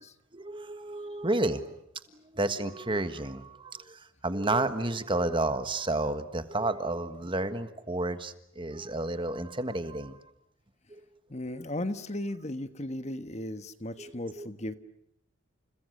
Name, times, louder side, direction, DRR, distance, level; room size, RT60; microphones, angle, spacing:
voice 1, 0.3-1.8 2.1-10.2 10.9-11.0 14.0-14.5, right 2 dB, 25° right, 10 dB, 1.5 m, -31 dB
voice 2, 11.3-14.7, left 1 dB, 35° left, 11 dB, 1.3 m, -36 dB
30.0 x 30.0 x 6.6 m, 0.79 s
head